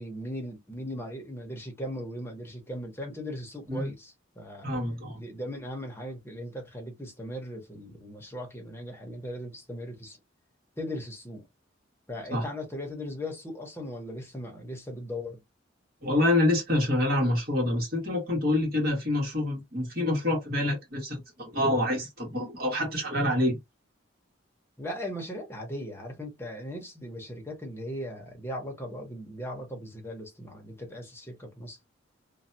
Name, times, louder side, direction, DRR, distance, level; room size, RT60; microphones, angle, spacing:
voice 1, 0.0-4.7 5.1-10.2 10.8-11.5 12.1-15.4 24.8-31.8, equal, 10° left, 0.9 m, -38 dB
voice 2, 4.6-5.2 12.3-12.4 16.0-23.6, left 1 dB, 50° right, 1.8 m, -27 dB
3.2 x 2.3 x 2.7 m
head